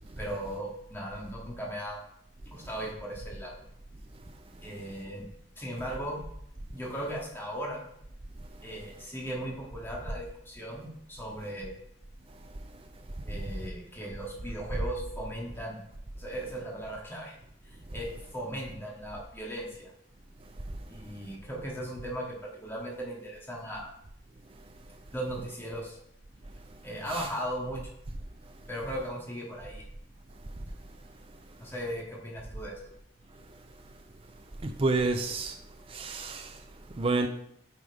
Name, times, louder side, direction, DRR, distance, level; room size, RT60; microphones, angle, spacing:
voice 1, 0.2-2.0 2.5-3.6 4.6-5.3 5.6-6.2 6.7-7.8 8.6-11.7 13.2-15.8 16.2-17.3 17.7-19.9 20.9-23.9 25.1-26.0 26.8-27.8 28.7-29.8 31.6-32.8, right 1 dB, 15° left, 2.5 m, -37 dB
voice 2, 34.6-35.6 35.9-36.5 37.0-37.3, right 3 dB, 35° right, 0.6 m, -29 dB
9.2 x 5.0 x 5.0 m
head